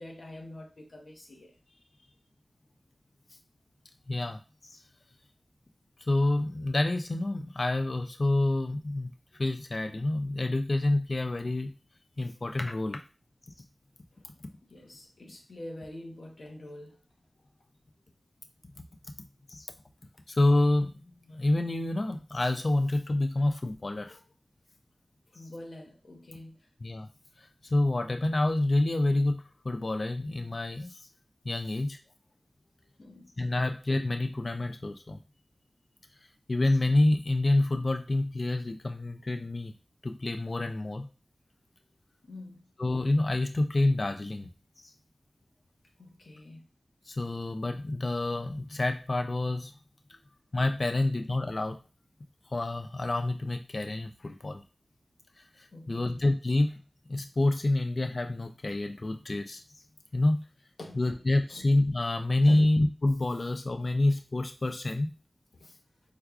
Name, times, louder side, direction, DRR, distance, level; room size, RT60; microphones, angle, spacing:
voice 1, 0.0-2.1 14.1-14.3 14.7-17.0 25.3-26.6 33.0-33.3 42.2-42.7 46.0-46.6 55.7-56.1 60.8-61.2 61.5-61.6 62.4-62.7 65.5-65.7, left 1 dB, 80° left, 0.8 m, -46 dB
voice 2, 4.1-4.4 4.7-4.8 6.1-9.1 9.4-11.7 12.2-13.0 18.8-18.9 19.5-19.7 20.3-20.9 21.3-24.2 26.8-27.1 27.4-31.0 31.4-32.0 33.4-35.2 36.5-39.7 40.0-41.1 42.8-44.5 47.1-49.7 50.5-51.8 52.5-54.6 55.6-56.8 57.1-59.6 60.1-60.4 61.0-65.1, left 2 dB, 50° left, 0.3 m, -28 dB
4.6 x 2.3 x 2.3 m
wide cardioid pair, 75°, 0 cm